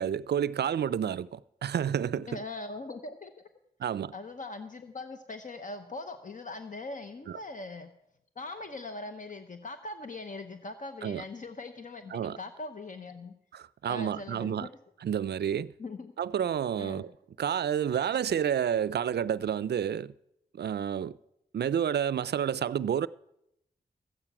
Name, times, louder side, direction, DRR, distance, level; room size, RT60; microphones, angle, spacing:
voice 1, 0.0-2.3 3.8-4.1 7.3-7.4 11.0-11.2 12.1-12.4 13.5-14.7 15.0-15.7 16.2-17.1 17.4-20.1 20.5-21.1 21.5-23.1, right 9 dB, 70° right, 0.4 m, -30 dB
voice 2, 2.3-3.3 4.1-7.9 8.4-13.3 13.9-14.7 15.8-16.1 16.8-17.1, left 2 dB, 45° left, 0.8 m, -41 dB
13.0 x 8.8 x 5.9 m
cardioid pair, 50°, 18 cm